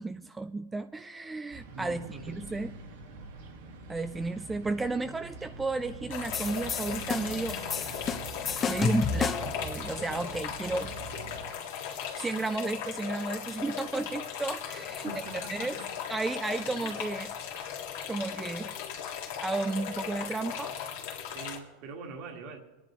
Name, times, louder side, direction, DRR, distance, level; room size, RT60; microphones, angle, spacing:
voice 1, 0.0-2.7 3.9-7.6 8.7-10.9 12.2-15.1 15.5-15.8 16.1-17.3 18.1-18.7 19.4-20.7, right 3 dB, 10° right, 10 dB, 0.3 m, -33 dB
sound 1, 1.5-11.5, right 3 dB, 85° right, 2.4 m, -44 dB
voice 2, 1.7-2.4 15.0-15.9 16.7-16.9 21.3-22.6, right 4 dB, 55° right, 1 dB, 1.7 m, -43 dB
sound 2, 6.1-21.6, left 8 dB, 70° left, 2.1 m, -38 dB
sound 3, 6.3-9.6, left 6 dB, 25° left, 0.7 m, -31 dB
25.5 x 10.0 x 3.1 m, 1.2 s
supercardioid pair, 140°, 0 cm